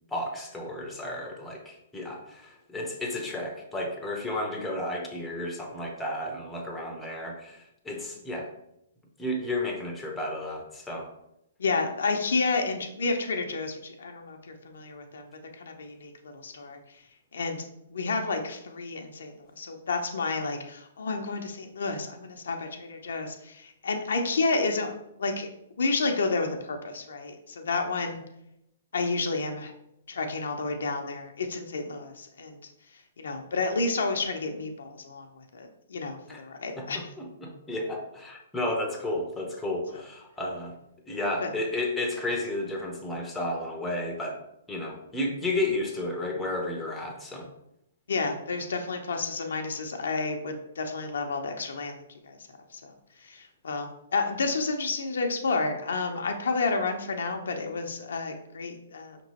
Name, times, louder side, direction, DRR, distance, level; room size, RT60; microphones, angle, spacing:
voice 1, 0.1-8.5 9.2-11.1 36.3-36.4 36.8-40.8 41.1-44.4 44.7-47.5, left 1 dB, 5° left, 1 dB, 0.7 m, -32 dB
voice 2, 11.6-16.8 17.3-17.6 17.9-24.9 25.2-25.5 25.8-28.2 28.9-29.7 30.1-32.6 33.2-37.0 41.4-41.5 48.1-52.4 52.7-52.9 53.2-59.2, left 3 dB, 75° left, 4 dB, 0.6 m, -30 dB
5.2 x 2.9 x 2.9 m, 0.82 s
hypercardioid pair, 135°, 0 cm